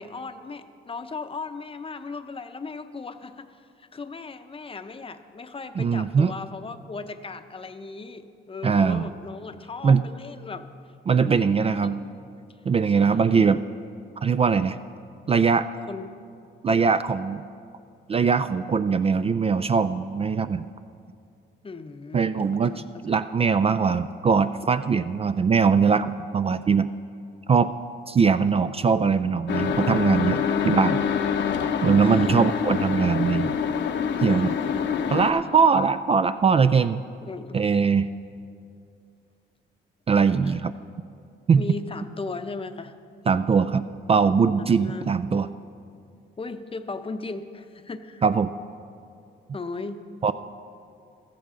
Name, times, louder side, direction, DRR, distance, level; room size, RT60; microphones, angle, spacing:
voice 1, 0.0-10.7 11.1-12.1 13.0-13.5 15.9-16.3 21.6-22.4 22.7-22.9 32.0-32.5 33.2-33.3 34.3-35.5 37.2-37.6 40.4-40.6 41.6-42.9 44.6-45.1 46.4-48.2 49.5-50.0, left 4 dB, 25° left, 9 dB, 0.7 m, -37 dB
voice 2, 5.8-6.3 8.6-9.1 9.8-10.0 11.1-12.0 12.7-13.6 14.2-14.8 15.3-15.7 16.6-17.4 18.1-20.6 22.1-26.9 27.5-27.7 28.1-31.0 31.8-33.5 34.2-34.5 35.1-37.0 37.5-38.1 40.1-40.7 41.5-41.6 43.3-45.5 48.2-48.5 50.2-50.3, right 5 dB, 30° right, 11 dB, 0.3 m, -21 dB
sound 1, 29.5-35.3, left 7 dB, 65° left, 0.9 m, -26 dB
15.5 x 13.5 x 3.8 m, 2.4 s
cardioid pair, 90°, 20 cm